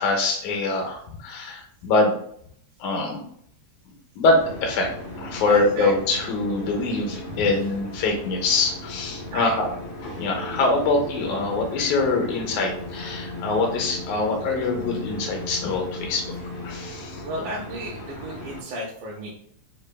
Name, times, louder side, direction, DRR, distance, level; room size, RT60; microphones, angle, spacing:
voice 1, 0.0-2.2 2.8-3.2 4.2-4.9 5.2-9.7 10.2-16.3 16.6-17.2, left 3 dB, 85° left, 1 dB, 2.0 m, -24 dB
sound 1, 4.4-18.6, left 1 dB, 70° left, 1.7 m, -36 dB
voice 2, 5.4-5.9 9.3-9.8 17.2-19.3, right 1 dB, 85° right, -4 dB, 2.1 m, -33 dB
5.1 x 2.1 x 2.2 m, 0.65 s
omnidirectional pair, 3.4 m